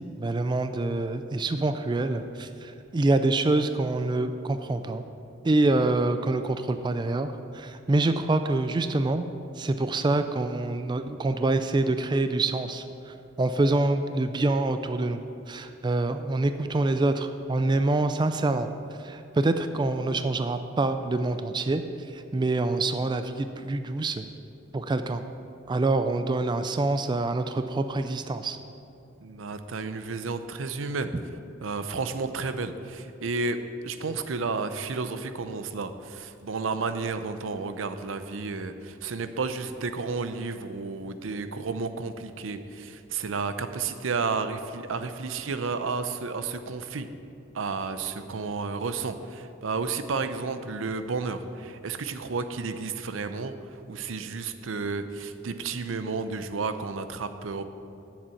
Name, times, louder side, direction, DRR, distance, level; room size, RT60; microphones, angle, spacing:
voice 1, 0.2-5.0 5.4-9.3 9.6-15.2 15.5-18.7 19.0-21.8 22.1-24.3 24.7-25.2 25.7-28.6, right 2 dB, 25° right, 9 dB, 0.3 m, -26 dB
voice 2, 29.2-31.1 31.6-47.1 47.5-53.5 53.9-57.7, right 4 dB, 80° right, 10 dB, 0.6 m, -32 dB
7.5 x 7.3 x 8.3 m, 2.6 s
head